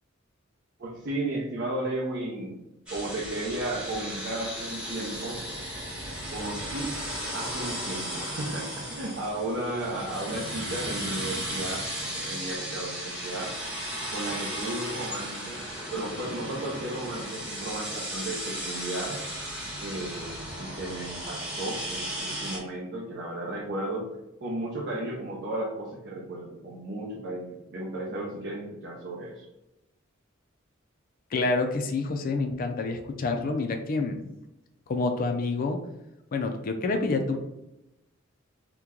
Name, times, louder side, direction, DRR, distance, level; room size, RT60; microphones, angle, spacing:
voice 1, 0.8-2.6 2.9-5.4 6.3-7.0 7.3-13.5 14.1-15.6 15.9-19.2 19.8-24.1 24.4-29.4, right 1 dB, 60° right, -4 dB, 0.6 m, -34 dB
sound 1, 2.9-22.6, equal, 5° right, 0.9 m, -35 dB
voice 2, 31.3-34.2 34.9-35.8 36.3-37.4, left 3 dB, 45° left, 5 dB, 0.3 m, -28 dB
2.9 x 2.2 x 3.6 m, 0.94 s
head